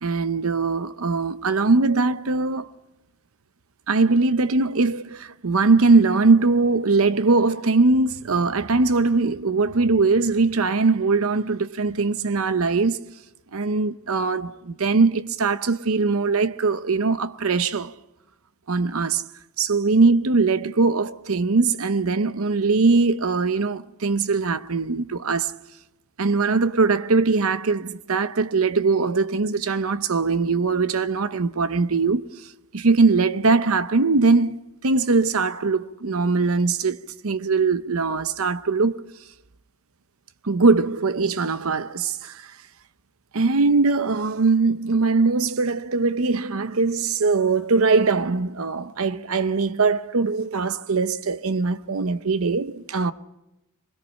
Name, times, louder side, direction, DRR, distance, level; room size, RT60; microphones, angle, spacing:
voice 1, 0.0-2.7 3.9-13.0 13.5-17.9 18.7-19.2 19.6-25.5 26.2-32.2 32.7-37.0 37.2-39.0 40.4-42.5 43.3-53.1, right 4 dB, 70° right, 0.8 m, -21 dB
23.5 x 21.5 x 5.7 m
head